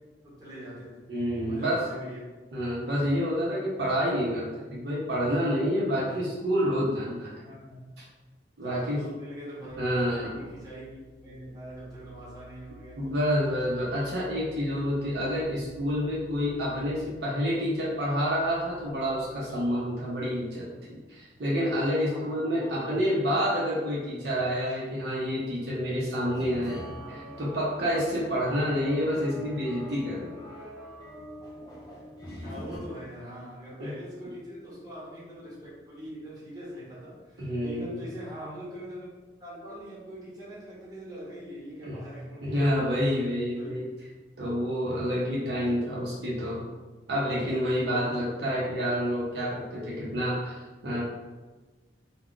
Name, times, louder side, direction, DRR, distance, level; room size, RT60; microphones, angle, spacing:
voice 1, 0.2-2.2 6.0-6.2 7.4-7.9 8.6-9.8 10.0-13.1 22.1-23.1 27.0-27.4 29.1-29.5 32.4-39.1 39.4-42.9 43.5-43.7 45.6-46.2, equal, 20° right, -9 dB, 1.0 m, -43 dB
voice 2, 1.1-1.9 2.5-7.4 8.0-8.1 8.6-9.0 9.8-10.4 13.0-30.5 33.8-33.9 37.4-38.1 41.8-42.0 42.4-43.9 44.4-46.6 47.1-51.0, equal, 65° right, -6 dB, 0.6 m, -28 dB
sound 1, 9.7-19.6, right 2 dB, 80° left, 0.6 m, -51 dB
sound 2, 26.3-32.8, equal, 25° left, 0.6 m, -43 dB
2.3 x 2.1 x 3.6 m, 1.3 s
head